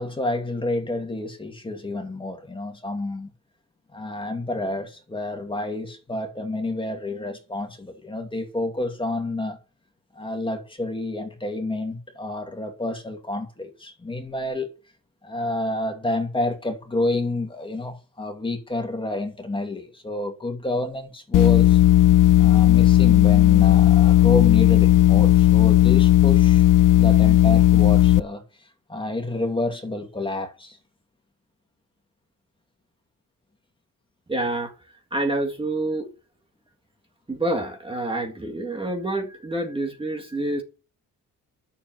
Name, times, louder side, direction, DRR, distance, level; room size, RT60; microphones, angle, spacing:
voice 1, 0.0-3.3 3.9-9.6 10.1-14.7 15.2-21.8 22.4-26.6 27.0-28.4 28.9-30.8, left 2 dB, 15° left, 2.5 m, -29 dB
sound 1, 21.3-28.2, left 13 dB, 70° left, 0.7 m, -15 dB
voice 2, 34.3-34.7 35.1-36.1 37.3-40.6, right 2 dB, 15° right, 1.9 m, -27 dB
11.0 x 7.2 x 9.1 m
cardioid pair, 140°, 33 cm